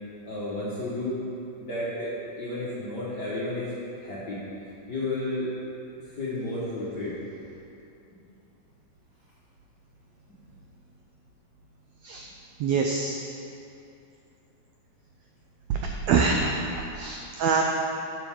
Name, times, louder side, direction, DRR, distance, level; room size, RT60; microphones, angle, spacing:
voice 1, 0.3-1.1 1.6-2.1 2.4-3.7 4.0-4.4 4.9-5.5 6.0-7.2, left 2 dB, 50° left, -9 dB, 1.3 m, -32 dB
voice 2, 12.6-13.2 15.7-15.8 16.1-16.5 17.0-17.6, right 5 dB, 85° right, 1 dB, 1.5 m, -24 dB
12.0 x 7.2 x 3.6 m, 2.8 s
omnidirectional pair, 3.7 m